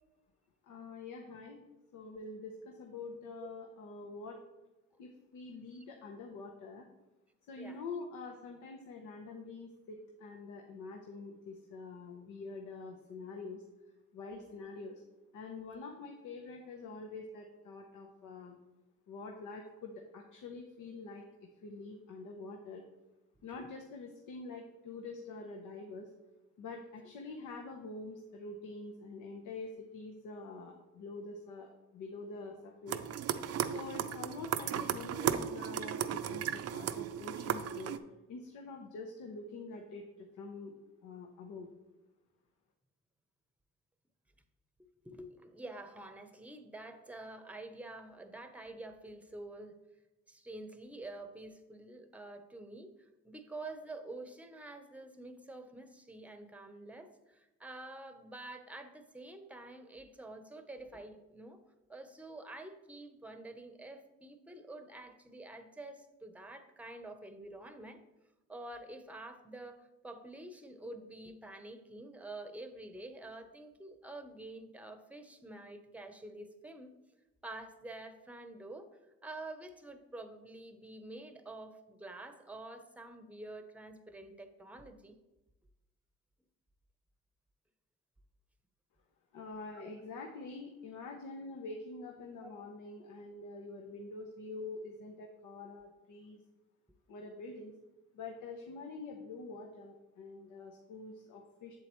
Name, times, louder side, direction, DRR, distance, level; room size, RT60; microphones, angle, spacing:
voice 1, 0.7-1.6 1.9-4.4 5.0-6.8 7.5-13.6 14.1-15.0 15.3-18.6 19.1-21.2 21.6-22.8 23.4-26.1 26.6-33.0 33.7-38.0 38.3-40.7 41.0-41.7 89.3-96.4 97.1-97.7 98.1-101.7, left 3 dB, 85° left, 1 dB, 0.9 m, -46 dB
sound 1, 32.9-38.0, right 9 dB, 55° right, 0.5 m, -35 dB
voice 2, 45.0-49.7 50.3-52.9 53.2-61.6 61.9-68.0 68.5-76.9 77.4-78.9 79.2-85.2 89.7-89.9 92.4-92.5, right 2 dB, 5° right, 8 dB, 0.8 m, -48 dB
7.8 x 7.5 x 3.1 m, 1.0 s
cardioid pair, 90°, 30 cm